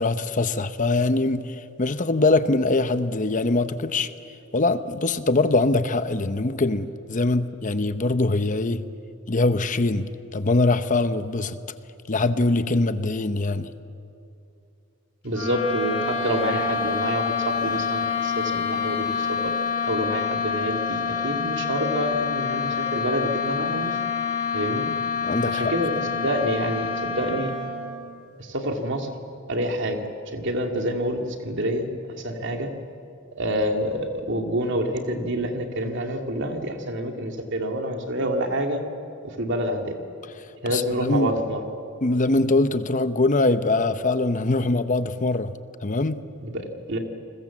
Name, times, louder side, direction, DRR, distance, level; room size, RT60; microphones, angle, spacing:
voice 1, 0.0-4.1 4.5-8.8 9.3-11.6 12.1-13.7 25.2-25.7 40.7-41.3 42.0-45.5 45.8-46.2, left 2 dB, 35° left, 11 dB, 0.8 m, -23 dB
voice 2, 15.2-19.5 19.8-24.0 24.5-24.9 25.4-27.5 28.4-29.1 29.5-30.0 30.3-31.9 32.2-32.7 33.4-38.8 39.2-39.9 40.6-41.6 46.4-47.0, equal, 55° right, 4 dB, 2.6 m, -27 dB
sound 1, 15.3-28.0, left 5 dB, 85° left, 7.0 m, -27 dB
29.5 x 21.0 x 7.4 m, 2.7 s
head